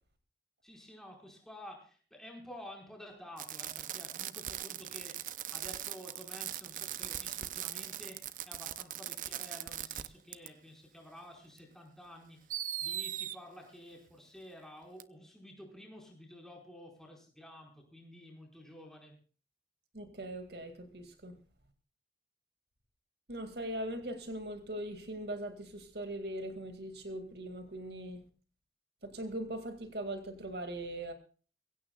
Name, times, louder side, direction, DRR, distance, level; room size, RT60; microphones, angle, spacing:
voice 1, 0.6-5.2 5.5-12.4 12.8-19.1, equal, 5° left, 4.7 m, -51 dB
Fireworks, 3.4-10.1 10.3-10.5 11.6-11.7 12.5-13.4 15.0-15.1, right 12 dB, 45° right, 0.6 m, -40 dB
voice 2, 19.9-21.4 23.3-28.2 29.0-31.1, right 1 dB, 70° right, 2.1 m, -40 dB
22.5 x 16.5 x 2.3 m
head